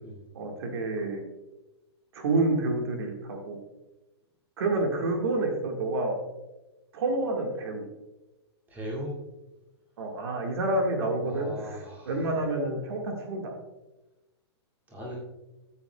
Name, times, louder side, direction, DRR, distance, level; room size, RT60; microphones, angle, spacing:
voice 1, 0.3-1.2 2.1-3.6 4.6-6.2 6.9-7.9 10.0-13.5, right 2 dB, 60° right, 1 dB, 1.8 m, -28 dB
voice 2, 8.7-9.1 11.3-12.2 14.9-15.2, equal, 10° right, -4 dB, 2.4 m, -38 dB
12.5 x 8.0 x 2.3 m, 1.0 s
hypercardioid pair, 165°, 15 cm